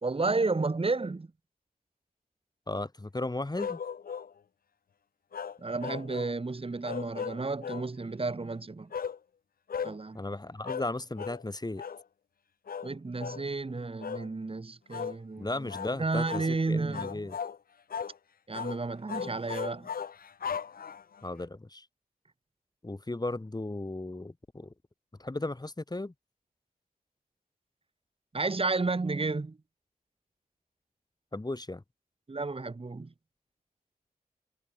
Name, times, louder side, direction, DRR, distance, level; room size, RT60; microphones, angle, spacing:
voice 1, 0.0-1.3 5.6-8.9 9.8-10.2 12.8-15.7 16.0-17.3 18.5-19.9 28.3-29.6 32.3-33.1, right 3 dB, 40° right, 2.8 m, -32 dB
voice 2, 2.7-3.8 10.1-11.8 15.4-17.3 21.2-21.9 22.8-24.7 25.2-26.1 31.3-31.8, left 2 dB, 25° left, 5.3 m, -35 dB
sound 1, 3.6-4.3 5.3-6.3 6.8-7.9 8.9-9.2 9.7-10.0 10.6-10.9 11.2-11.4 11.8-12.0 12.7-12.9 13.2-13.4 14.0-14.3 14.9-15.2 15.7-15.9 16.3-16.5 16.9-17.6 17.9-18.2 18.5-18.8 19.1-21.2, left 7 dB, 75° left, 1.0 m, -37 dB
cardioid pair, 60°, 15 cm